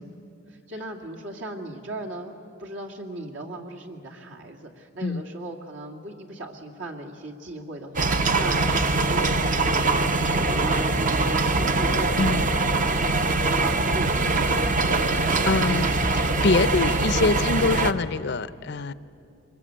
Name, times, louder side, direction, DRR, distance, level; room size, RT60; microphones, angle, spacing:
voice 1, 0.7-2.3 2.6-12.5 12.8-14.6, right 2 dB, 70° right, 1 dB, 2.3 m, -37 dB
sound 1, 7.9-17.9, right 3 dB, 40° right, 0.8 m, -23 dB
voice 2, 15.1-18.9, left 4 dB, 60° left, 16 dB, 0.6 m, -25 dB
24.0 x 21.5 x 8.7 m, 2.6 s
head